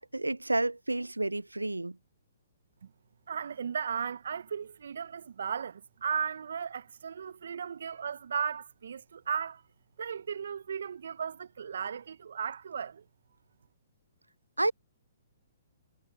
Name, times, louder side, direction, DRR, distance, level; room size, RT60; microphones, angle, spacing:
voice 1, 0.0-2.0 14.6-14.7, right 2 dB, 90° right, 0.5 m, -30 dB
voice 2, 3.3-9.6 10.0-13.0, right 7 dB, 65° right, 0.9 m, -36 dB
figure-of-eight pair, 120°, 0 cm